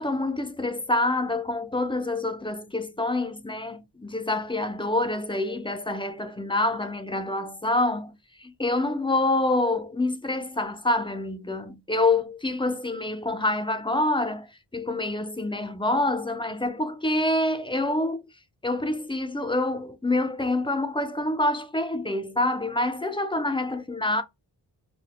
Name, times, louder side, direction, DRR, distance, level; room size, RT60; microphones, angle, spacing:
voice 1, 0.0-14.5 14.7-18.2 18.6-24.2, left 2 dB, 15° left, 0.4 m, -26 dB
4.0 x 2.1 x 2.8 m
wide cardioid pair, 130°, 42 cm